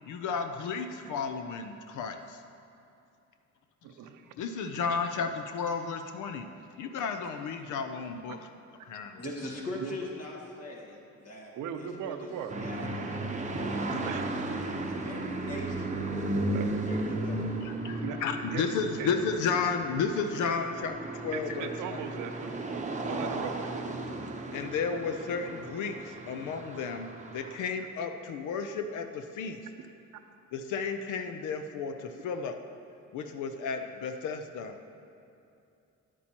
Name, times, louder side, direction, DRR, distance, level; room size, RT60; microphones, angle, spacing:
voice 1, 0.1-2.4 4.4-6.5 6.8-8.4 8.8-9.2 13.7-14.1 17.6-22.0 24.5-29.6 30.5-32.6 33.1-34.8, left 5 dB, 80° left, 7 dB, 0.6 m, -33 dB
voice 2, 3.8-4.3 8.3-8.4 9.8-10.0 11.6-12.5 14.0-14.2 16.5-16.6 18.0-18.2 18.5-18.6 19.0-19.1 21.3-24.2 32.1-32.2, right 8 dB, 85° right, 7 dB, 0.7 m, -39 dB
voice 3, 9.2-12.3 12.6-13.2 13.5-14.4 14.9-15.9 16.8-17.6, left 1 dB, 55° left, -2 dB, 1.7 m, -42 dB
sound 1, 12.5-27.6, right 2 dB, 25° right, 0.8 m, -35 dB
9.9 x 8.5 x 2.9 m, 2.6 s
cardioid pair, 90°, 30 cm